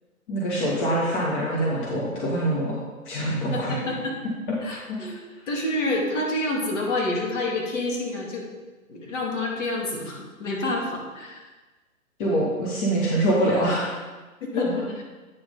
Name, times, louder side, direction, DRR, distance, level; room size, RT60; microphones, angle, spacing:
voice 1, 0.3-2.8 3.0-3.7 4.9-5.0 12.2-13.9, right 1 dB, 35° left, -5 dB, 1.7 m, -24 dB
voice 2, 3.5-4.1 4.6-5.2 5.5-8.5 8.9-11.4 14.5-14.8, left 2 dB, 55° left, -2 dB, 2.5 m, -28 dB
9.2 x 6.3 x 3.8 m, 1.2 s
figure-of-eight pair, 135°, 44 cm